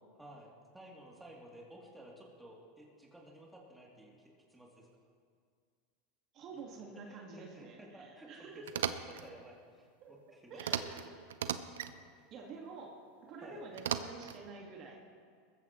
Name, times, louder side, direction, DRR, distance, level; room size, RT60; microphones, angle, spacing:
voice 1, 0.2-4.2 4.5-4.9 6.5-6.6 6.9-10.6 13.4-13.6, right 1 dB, 5° right, -3 dB, 2.9 m, -54 dB
voice 2, 6.3-8.7 10.0-10.2 10.5-11.0 12.3-15.0, right 4 dB, 45° right, 0 dB, 1.9 m, -48 dB
sound 1, 8.7-9.2 10.6-11.0 11.3-11.9 13.8-14.4, right 9 dB, 90° right, 0.6 m, -36 dB
20.0 x 14.5 x 3.1 m, 2.1 s
supercardioid pair, 115°, 0 cm